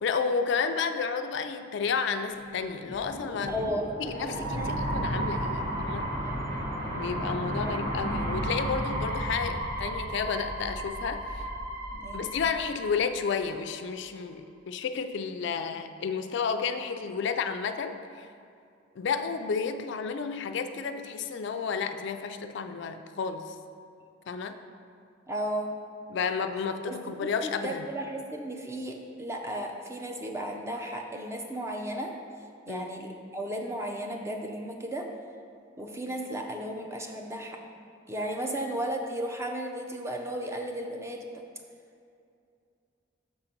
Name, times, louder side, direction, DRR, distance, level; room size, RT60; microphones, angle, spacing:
voice 1, 0.0-3.5 4.0-6.1 6.9-11.5 12.1-18.3 19.0-23.5 24.3-24.6 26.1-27.8 32.7-32.9, left 5 dB, 60° left, 8 dB, 0.3 m, -31 dB
sound 1, 2.7-13.6, right 1 dB, 45° right, 1.6 m, -33 dB
voice 2, 3.5-4.8 6.2-6.5 7.6-7.7 11.9-12.2 25.3-25.8 26.9-32.1 32.7-35.1 35.8-37.6 38.1-41.4, right 1 dB, 15° right, 2 dB, 0.5 m, -35 dB
6.6 x 3.9 x 5.8 m, 2.5 s
head